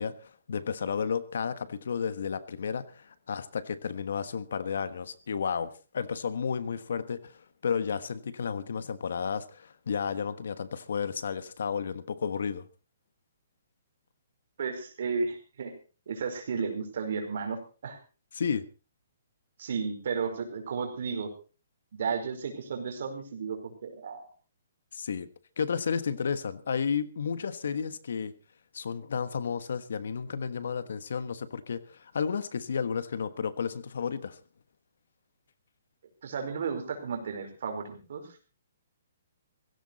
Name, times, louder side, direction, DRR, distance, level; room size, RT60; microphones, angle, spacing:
voice 1, 0.0-12.6 18.3-18.7 24.9-25.3 25.6-28.3 28.7-34.4, left 6 dB, 70° left, 1.3 m, -32 dB
voice 2, 14.6-15.7 16.1-18.0 19.6-21.3 21.9-24.3 36.2-38.2, right 5 dB, 55° right, 5.0 m, -33 dB
17.0 x 16.5 x 4.1 m
hypercardioid pair, 170°, 0 cm